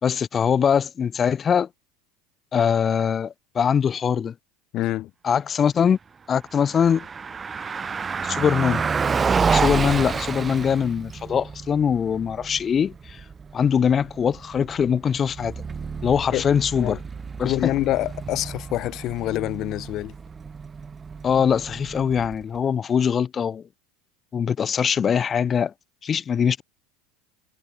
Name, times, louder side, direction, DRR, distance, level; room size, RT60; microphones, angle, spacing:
voice 1, 0.0-1.7 2.5-4.3 5.2-6.0 6.3-7.1 8.2-8.8 9.5-13.2 13.5-15.5 16.0-17.0 17.4-17.5 21.2-23.6 24.3-25.7 26.0-26.6, left 7 dB, 30° left, 2.8 m, -22 dB
voice 2, 4.7-5.1 16.3-17.0 17.4-20.1, left 15 dB, 50° left, 2.9 m, -26 dB
Car passing by, 6.4-22.6, right 5 dB, 25° right, 2.4 m, -30 dB
hypercardioid pair, 85°, 0 cm